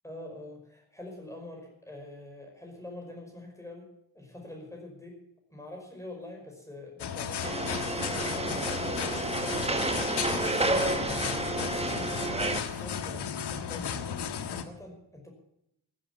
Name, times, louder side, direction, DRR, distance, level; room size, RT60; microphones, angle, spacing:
voice 1, 0.0-3.9 4.1-5.2 5.5-9.4 10.0-12.2 12.5-14.1 14.5-15.3, left 2 dB, 10° left, 0 dB, 5.4 m, -46 dB
sound 1, 7.0-14.6, left 7 dB, 85° left, 1.6 m, -34 dB
sound 2, 7.4-12.6, right 2 dB, 15° right, 1.5 m, -30 dB
15.0 x 11.5 x 7.1 m, 0.78 s
wide cardioid pair, 140°, 39 cm